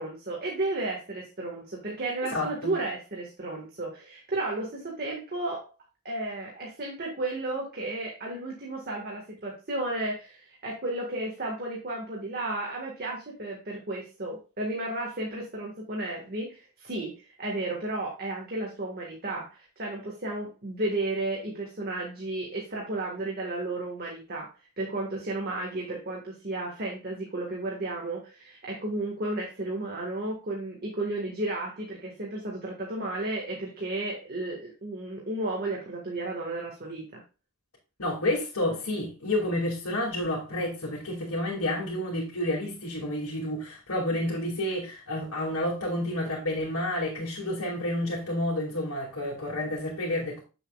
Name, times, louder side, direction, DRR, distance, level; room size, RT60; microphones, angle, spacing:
voice 1, 0.0-5.7 6.1-24.5 24.8-37.2, right 2 dB, 45° right, 1.7 m, -33 dB
voice 2, 2.3-2.7 38.0-50.4, left 1 dB, 75° left, 2.4 m, -30 dB
8.4 x 6.9 x 2.4 m
head